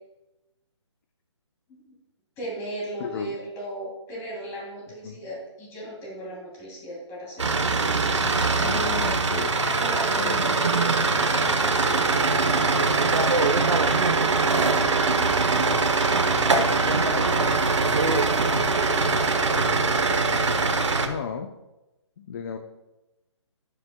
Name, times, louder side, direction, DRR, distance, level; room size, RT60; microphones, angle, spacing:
voice 1, 2.4-7.4 9.8-10.9 11.5-12.8 13.0-13.5 14.0-15.4 16.5-17.7 18.5-19.1, right 1 dB, 20° left, -3 dB, 2.8 m, -37 dB
voice 2, 3.0-3.4 5.0-5.2 8.6-9.6 10.1-10.8 21.0-21.5 22.2-22.6, left 6 dB, 40° left, 6 dB, 0.5 m, -34 dB
sound 1, 7.4-21.1, right 3 dB, 70° right, 1.0 m, -22 dB
9.9 x 8.2 x 2.2 m, 1.0 s
figure-of-eight pair, 140°, 16 cm